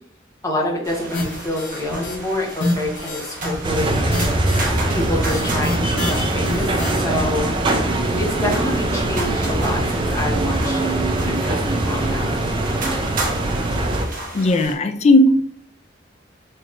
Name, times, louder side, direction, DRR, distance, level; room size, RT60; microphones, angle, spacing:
voice 1, 0.4-6.7 7.0-13.0, left 1 dB, 20° left, -1 dB, 0.9 m, -27 dB
sound 1, 0.8-14.7, right 2 dB, 50° right, 0.9 m, -33 dB
sound 2, 1.1-2.2 2.5-7.4, left 2 dB, 85° left, 0.8 m, -28 dB
sound 3, 3.6-14.1, right 2 dB, 25° right, 0.4 m, -22 dB
voice 2, 14.3-15.5, left 1 dB, 35° left, 7 dB, 0.3 m, -16 dB
4.4 x 3.0 x 2.5 m, 0.64 s
head